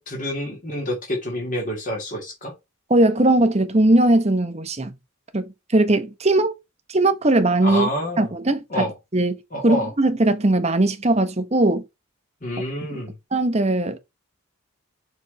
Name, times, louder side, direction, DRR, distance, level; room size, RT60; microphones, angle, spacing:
voice 1, 0.0-2.5 7.6-8.3 8.7-8.9 9.5-9.9 12.4-13.1, equal, 40° left, 2.7 m, -27 dB
voice 2, 2.9-4.9 5.3-5.4 5.7-6.5 6.9-7.9 8.2-8.9 9.1-11.8 12.9-13.0 13.3-14.0, right 2 dB, 30° right, 1.0 m, -19 dB
6.9 x 4.3 x 4.2 m
head